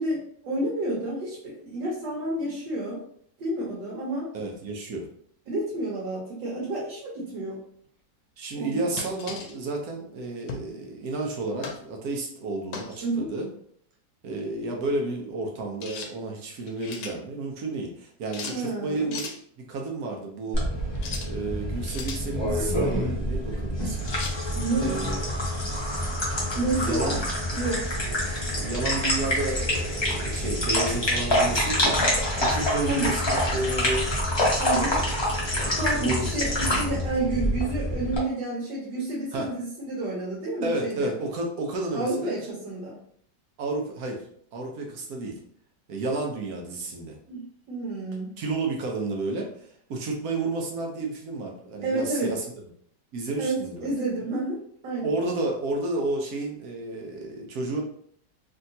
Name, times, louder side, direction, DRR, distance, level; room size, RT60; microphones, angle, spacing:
voice 1, 0.0-3.0 3.4-4.3 5.5-7.6 8.6-8.9 13.0-13.3 18.5-19.1 24.5-25.0 26.5-27.2 27.5-27.9 32.8-33.1 34.6-35.0 35.7-41.1 41.9-43.0 46.0-46.2 47.3-48.3 51.8-52.3 53.4-55.1, right 2 dB, 85° right, -6 dB, 1.6 m, -30 dB
voice 2, 4.3-5.1 8.4-13.5 14.2-20.6 21.2-24.1 24.8-25.2 26.8-27.2 28.1-32.0 32.4-33.2 33.5-34.1 34.6-35.1 35.5-36.3 39.3-39.5 40.6-42.4 43.6-44.2 44.5-45.4 45.9-47.2 48.4-52.4 53.1-53.9 55.0-57.8, right 2 dB, 65° right, 1 dB, 1.1 m, -31 dB
Expandable Baton Sounds, 9.0-9.5 10.5-10.7 11.6-11.8 12.7-13.0 15.8-16.1 16.6-17.2 18.3-18.6 19.1-19.4 20.9-21.3 21.8-22.3 24.1-24.4, left 5 dB, 80° left, 1.2 m, -37 dB
sound 1, 20.5-38.2, equal, 30° left, 0.5 m, -26 dB
3.3 x 2.8 x 2.7 m, 0.64 s
omnidirectional pair, 1.9 m